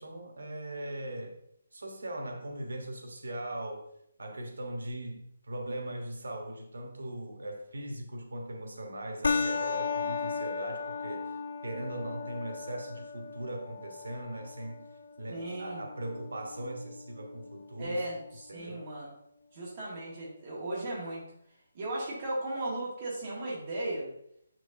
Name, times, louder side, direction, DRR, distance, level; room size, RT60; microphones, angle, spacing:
voice 1, 0.0-1.4 1.7-3.9 4.2-11.3 11.6-14.9 15.2-18.0 18.5-18.9, right 1 dB, 85° right, 1.2 m, -39 dB
sound 1, 9.2-18.2, left 5 dB, 50° left, 0.4 m, -36 dB
voice 2, 15.3-15.8 17.8-19.1 19.5-21.2 21.7-24.1, right 1 dB, 25° right, 1.9 m, -36 dB
7.5 x 6.1 x 2.7 m
hypercardioid pair, 180°, 0 cm